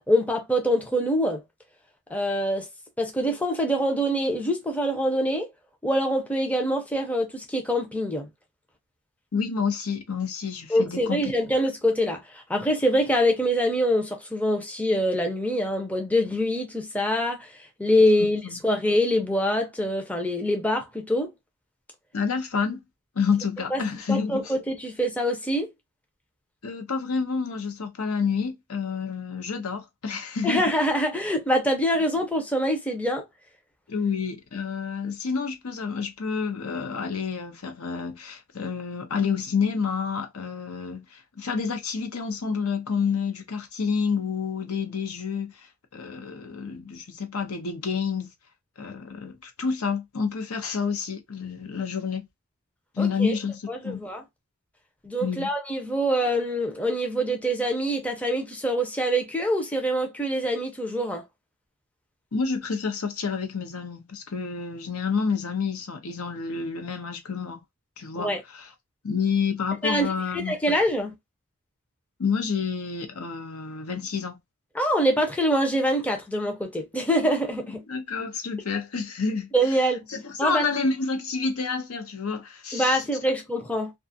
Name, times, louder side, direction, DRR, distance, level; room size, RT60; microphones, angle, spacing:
voice 1, 0.1-1.4 2.1-2.7 3.0-5.5 5.8-8.3 10.7-17.5 17.8-21.3 23.7-23.8 24.1-25.7 30.4-33.2 53.0-53.3 53.7-54.2 55.0-61.2 68.2-68.4 69.8-70.1 70.3-71.1 74.7-77.8 79.5-80.1 80.4-80.7 82.7-83.9, equal, 5° left, 0.5 m, -25 dB
voice 2, 9.3-11.3 18.2-18.6 22.1-22.8 23.1-24.5 26.6-30.6 33.9-48.3 48.8-52.3 52.9-54.0 55.2-55.5 62.3-67.6 68.0-68.7 69.0-70.8 72.2-74.4 77.9-83.0, left 5 dB, 75° left, 0.7 m, -29 dB
2.4 x 2.3 x 2.6 m
head